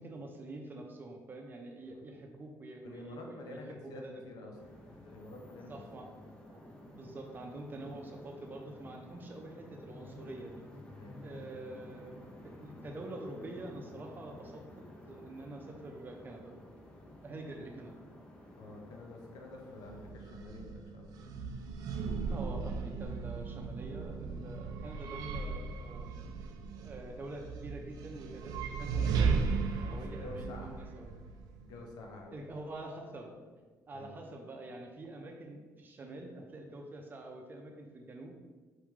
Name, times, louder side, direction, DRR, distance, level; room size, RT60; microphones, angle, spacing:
voice 1, 0.0-4.1 5.7-6.1 6.5-10.7 11.2-16.6 17.2-18.1 22.3-26.1 26.8-29.5 29.9-31.1 32.3-33.3 33.9-38.3, right 2 dB, 30° right, 2 dB, 0.7 m, -46 dB
voice 2, 2.8-4.5 4.9-5.8 6.3-6.4 10.9-11.2 18.6-21.4 29.7-30.8 31.6-32.4 33.9-34.2, left 2 dB, 85° left, 1 dB, 0.8 m, -48 dB
sound 1, 4.5-20.1, left 1 dB, 15° left, 0.7 m, -52 dB
sound 2, 19.8-32.0, right 5 dB, 80° right, 0.4 m, -36 dB
4.8 x 3.1 x 3.6 m, 1.4 s
cardioid pair, 125°, 7 cm